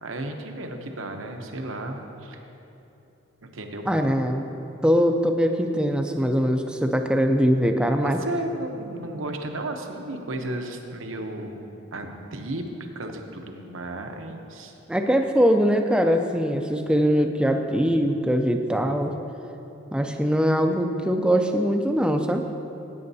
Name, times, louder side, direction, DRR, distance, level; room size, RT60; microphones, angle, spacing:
voice 1, 0.0-2.4 3.4-3.9 8.0-11.6 11.9-12.7 12.9-14.7, right 1 dB, 80° right, 4 dB, 0.9 m, -33 dB
voice 2, 3.9-4.5 4.8-8.2 14.9-19.1 19.9-22.4, equal, 5° right, 5 dB, 0.4 m, -22 dB
16.0 x 8.7 x 2.7 m, 3.0 s
head